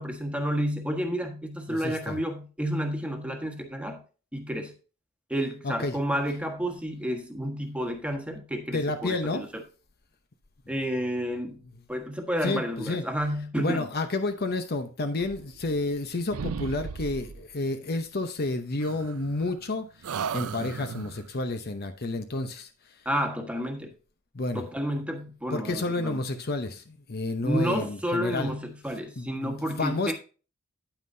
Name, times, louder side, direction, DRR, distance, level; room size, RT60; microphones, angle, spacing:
voice 1, 0.0-4.0 4.3-4.7 5.3-9.6 10.7-11.6 11.9-13.9 23.0-23.9 24.5-26.2 27.4-30.1, equal, 5° right, 1.4 m, -30 dB
voice 2, 1.7-2.2 5.6-5.9 8.7-9.4 12.4-13.0 13.6-22.7 24.3-24.7 25.5-28.5 29.2-30.1, left 2 dB, 45° left, 0.8 m, -30 dB
sound 1, 15.2-16.0 16.3-17.5 18.8-19.7 20.0-21.3, right 6 dB, 75° right, 0.5 m, -36 dB
9.4 x 8.9 x 2.7 m
head